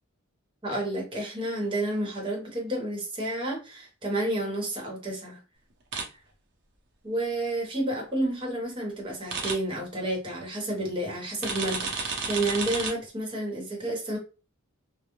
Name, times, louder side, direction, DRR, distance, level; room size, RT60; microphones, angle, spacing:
voice 1, 0.6-5.4 7.0-14.2, right 1 dB, 25° right, -1 dB, 1.0 m, -30 dB
sound 1, 5.9-6.0 9.3-9.5 11.4-12.9, right 4 dB, 55° right, 0.7 m, -31 dB
2.3 x 2.0 x 2.9 m, 0.31 s
head